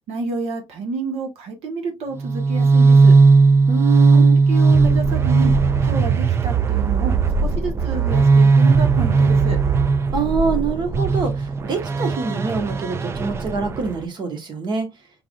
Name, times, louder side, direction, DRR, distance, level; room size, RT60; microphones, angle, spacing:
voice 1, 0.1-3.1 4.1-5.5 5.8-7.1 7.4-9.6, right 4 dB, 80° right, 1.4 m, -29 dB
sound 1, 2.2-14.0, right 4 dB, 25° right, 0.4 m, -17 dB
voice 2, 3.7-4.4 10.1-14.9, right 5 dB, 45° right, 1.3 m, -25 dB
4.8 x 3.5 x 2.4 m
cardioid pair, 165°, 10 cm